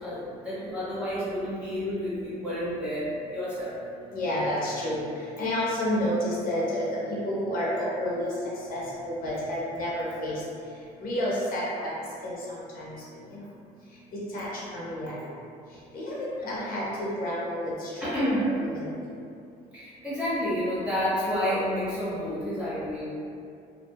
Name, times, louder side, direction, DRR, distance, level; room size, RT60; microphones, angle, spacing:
voice 1, 0.0-3.8 16.4-16.5 18.0-18.6 19.7-23.1, equal, 5° right, -12 dB, 1.2 m, -30 dB
voice 2, 4.1-8.3 8.7-10.4 11.0-12.0 12.2-13.4 14.3-15.3 15.9-18.9, left 1 dB, 60° left, -7 dB, 0.6 m, -30 dB
2.6 x 2.2 x 2.3 m, 2.5 s
cardioid pair, 110°, 17 cm